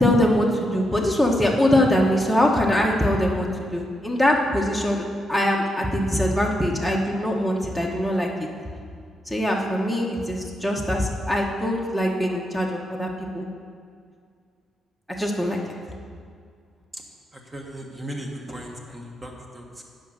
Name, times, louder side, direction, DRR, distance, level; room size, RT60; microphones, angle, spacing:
voice 1, 0.0-3.5 3.7-5.0 5.3-8.3 9.3-13.5 15.2-15.6, left 1 dB, 5° right, -1 dB, 1.2 m, -22 dB
voice 2, 17.3-19.8, equal, 20° right, 0 dB, 1.6 m, -37 dB
10.0 x 5.4 x 6.4 m, 2.2 s
cardioid pair, 90°, 0 cm